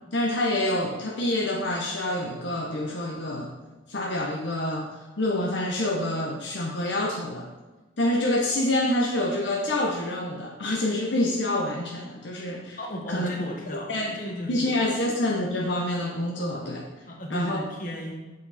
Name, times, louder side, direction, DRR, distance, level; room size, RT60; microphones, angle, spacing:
voice 1, 0.1-3.5 3.9-4.9 5.2-7.5 8.0-12.8 13.1-13.3 13.9-14.2 14.5-17.0 17.3-17.6, left 1 dB, 70° left, 0 dB, 1.0 m, -27 dB
voice 2, 12.8-13.9 14.2-14.9 17.1-18.1, left 1 dB, 45° left, 0 dB, 1.7 m, -35 dB
7.8 x 7.7 x 4.2 m, 1.2 s
head